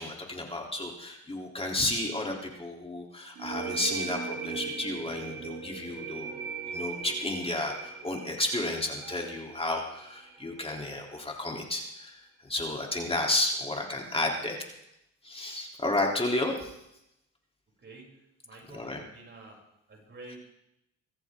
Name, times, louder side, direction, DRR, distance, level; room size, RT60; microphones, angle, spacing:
voice 1, 0.0-14.6 15.2-16.7 18.7-19.0, left 2 dB, 20° left, 0 dB, 3.4 m, -32 dB
sound 1, 3.4-10.8, right 5 dB, 90° right, 3.7 m, -39 dB
voice 2, 17.8-19.6 19.9-20.4, right 2 dB, 40° right, -2 dB, 7.3 m, -49 dB
24.0 x 14.0 x 3.8 m, 0.83 s
cardioid pair, 90°, 30 cm